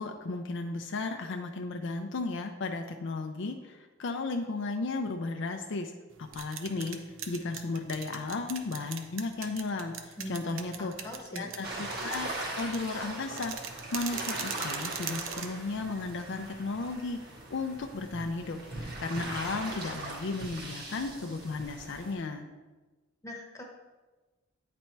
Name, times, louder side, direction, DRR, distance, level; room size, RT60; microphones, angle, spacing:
voice 1, 0.0-5.9 6.2-10.9 11.3-17.2 17.5-22.5, left 3 dB, 60° left, 5 dB, 0.5 m, -35 dB
sound 1, 6.1-16.5, right 7 dB, 70° right, 0.7 m, -41 dB
voice 2, 10.8-11.5 23.2-23.6, left 1 dB, 15° left, 0 dB, 1.0 m, -41 dB
sound 2, 11.6-22.1, right 2 dB, 50° right, 1.7 m, -40 dB
8.9 x 4.2 x 4.5 m, 1.2 s
head